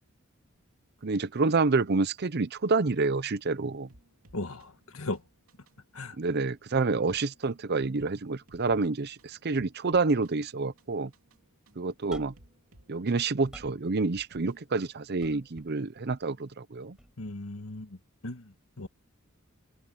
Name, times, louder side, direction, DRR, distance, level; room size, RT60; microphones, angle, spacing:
voice 1, 1.0-3.9 6.2-11.1 11.8-12.3 12.9-17.0, right 3 dB, 50° right, 0.7 m, -28 dB
sound 1, 3.9-15.1, right 1 dB, 80° right, 2.9 m, -60 dB
voice 2, 4.3-5.2 5.9-6.2 17.2-18.9, left 2 dB, 80° left, 1.5 m, -37 dB
sound 2, 12.1-12.5 13.1-13.9 15.2-15.8 17.0-17.1, equal, 5° right, 4.4 m, -49 dB
head